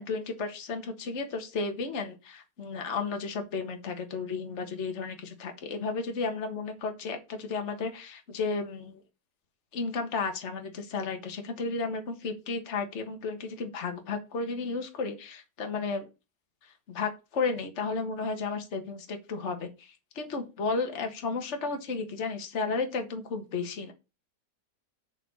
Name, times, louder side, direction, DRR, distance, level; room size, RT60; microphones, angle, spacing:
voice 1, 0.0-9.0 9.7-16.1 16.6-23.9, left 4 dB, 45° left, 5 dB, 1.6 m, -33 dB
7.0 x 4.7 x 6.9 m, 0.28 s
omnidirectional pair, 1.9 m